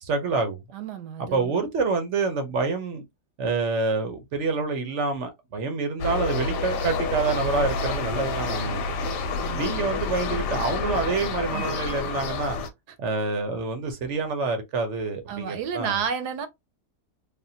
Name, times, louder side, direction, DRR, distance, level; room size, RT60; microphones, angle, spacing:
voice 1, 0.0-0.6 1.2-3.0 3.4-8.8 9.5-12.6 13.0-16.0, right 4 dB, 60° right, 0.8 m, -27 dB
voice 2, 0.7-1.6 9.4-9.7 11.5-11.7 15.3-16.5, right 7 dB, 80° right, 1.1 m, -31 dB
sound 1, 6.0-12.7, left 3 dB, 90° left, 1.2 m, -28 dB
3.4 x 2.2 x 2.6 m
omnidirectional pair, 1.8 m